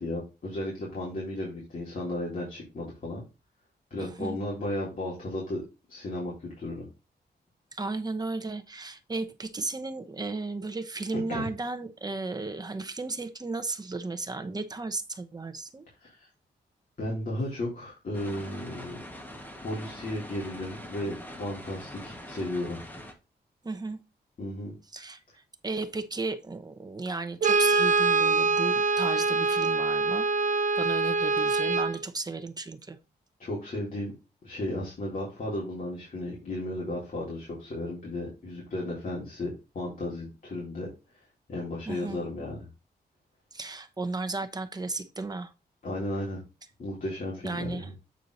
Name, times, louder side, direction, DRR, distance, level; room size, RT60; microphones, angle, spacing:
voice 1, 0.0-3.2 3.9-5.6 5.9-6.9 11.3-11.5 16.0-16.3 17.0-19.0 19.6-22.8 24.4-24.7 33.4-34.1 34.4-40.9 41.5-42.6 45.8-46.4 46.8-47.9, left 1 dB, 50° left, -5 dB, 3.9 m, -34 dB
voice 2, 4.0-4.4 7.7-15.9 23.6-24.0 24.9-30.3 30.8-33.0 41.9-42.3 43.5-45.5 47.4-48.0, right 3 dB, 20° right, 8 dB, 0.9 m, -34 dB
sound 1, 18.1-23.1, left 1 dB, 10° left, 1.6 m, -43 dB
Brass instrument, 27.4-32.0, right 3 dB, 50° right, 0.6 m, -24 dB
8.5 x 4.6 x 4.0 m, 0.28 s
wide cardioid pair, 120°, 17 cm